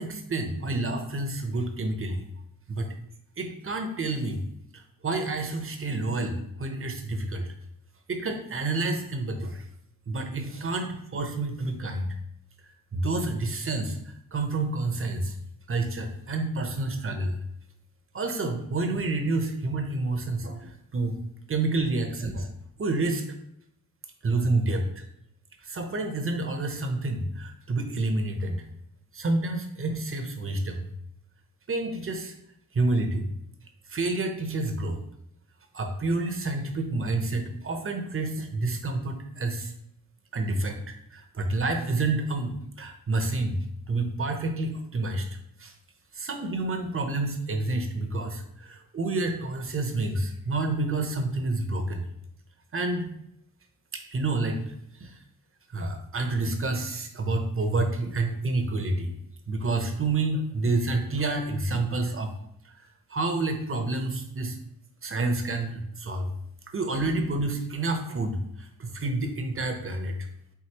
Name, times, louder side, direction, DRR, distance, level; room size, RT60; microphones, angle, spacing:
voice 1, 0.0-2.2 2.7-2.9 3.4-4.4 4.7-7.5 8.1-9.6 10.1-12.1 12.9-14.0 14.3-15.3 15.7-17.4 18.1-21.2 21.5-22.5 22.8-23.2 24.2-25.0 25.6-28.6 29.1-30.9 31.7-32.4 32.7-33.3 33.9-35.0 35.7-39.7 40.3-43.6 43.9-45.3 45.6-45.7 46.1-52.1 52.7-53.1 53.9-54.7 55.0-55.1 55.7-59.1 59.5-62.3 62.6-62.8 63.1-64.6 65.0-66.3 66.7-70.2, right 2 dB, 35° right, 5 dB, 0.8 m, -29 dB
4.7 x 3.8 x 2.9 m, 0.76 s
cardioid pair, 65°, 36 cm